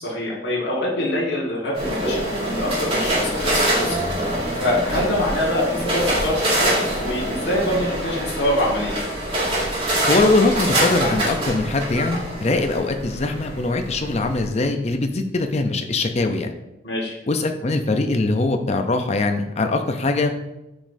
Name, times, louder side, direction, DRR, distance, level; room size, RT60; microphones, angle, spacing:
voice 1, 0.0-9.0 16.8-17.2, left 1 dB, 65° left, -5 dB, 1.7 m, -25 dB
sound 1, 1.7-14.5, right 1 dB, 30° right, 2.2 m, -24 dB
voice 2, 10.1-16.6 17.3-20.4, left 2 dB, 35° left, 6 dB, 0.6 m, -22 dB
9.0 x 5.2 x 2.7 m, 0.96 s
head